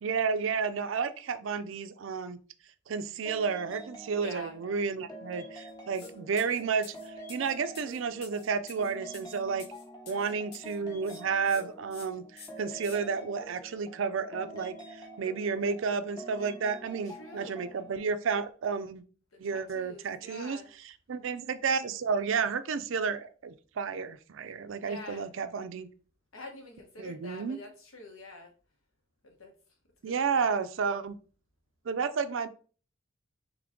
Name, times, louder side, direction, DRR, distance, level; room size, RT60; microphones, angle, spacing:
voice 1, 0.0-2.4 2.9-9.7 10.1-19.0 19.4-20.6 21.1-25.9 27.0-27.6 30.0-31.2 31.9-32.5, right 5 dB, 65° right, 12 dB, 0.4 m, -31 dB
sound 1, 3.3-18.0, right 1 dB, 20° left, 0.9 m, -47 dB
voice 2, 4.2-4.6 10.1-10.4 17.1-17.7 19.3-20.7 24.8-25.3 26.3-28.5 29.2-29.5 30.0-30.5, left 2 dB, 75° left, 2 dB, 1.2 m, -47 dB
sound 2, 5.9-6.1 6.4-10.8 11.0-11.6 11.9-12.1 12.4-13.0, left 5 dB, 50° left, 0.8 m, -50 dB
3.7 x 3.2 x 3.5 m, 0.39 s
head